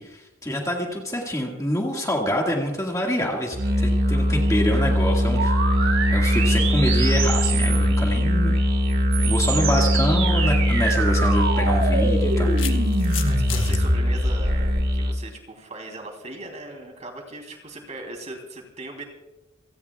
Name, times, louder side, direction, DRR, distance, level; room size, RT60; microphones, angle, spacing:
voice 1, 0.0-5.5 5.8-8.5 9.2-12.5, equal, 15° left, 0 dB, 1.9 m, -26 dB
Musical instrument, 3.5-15.3, equal, 50° right, 1.8 m, -21 dB
sound 1, 5.3-8.0 8.9-14.8, right 3 dB, 75° right, 5.5 m, -27 dB
sound 2, 10.6-10.8 11.9-13.8, left 9 dB, 60° left, 1.3 m, -34 dB
voice 2, 13.2-19.0, right 2 dB, 35° right, 3 dB, 3.2 m, -39 dB
28.5 x 17.5 x 2.4 m, 1.0 s
head